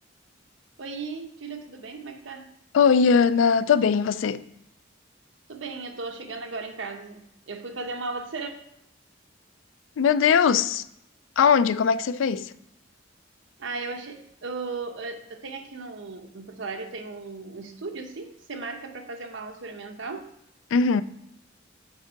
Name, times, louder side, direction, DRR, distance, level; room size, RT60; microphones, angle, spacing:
voice 1, 0.8-2.5 5.5-8.5 13.6-20.3, right 3 dB, 75° right, 0.9 m, -36 dB
voice 2, 2.7-4.4 10.0-10.8 11.4-12.5 20.7-21.0, left 6 dB, 80° left, 0.3 m, -20 dB
8.1 x 3.7 x 4.5 m
head